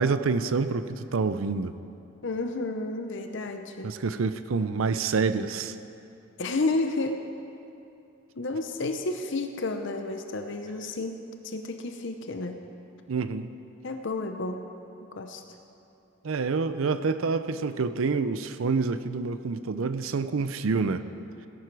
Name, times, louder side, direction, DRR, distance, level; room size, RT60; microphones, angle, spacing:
voice 1, 0.0-1.8 3.8-5.7 13.1-13.5 16.2-21.0, right 4 dB, 70° right, 12 dB, 0.5 m, -27 dB
voice 2, 2.2-3.9 6.4-7.2 8.4-11.2 11.4-12.6 13.8-14.6 15.1-15.4, left 2 dB, 60° left, 6 dB, 0.7 m, -31 dB
17.5 x 11.0 x 4.7 m, 2.7 s
head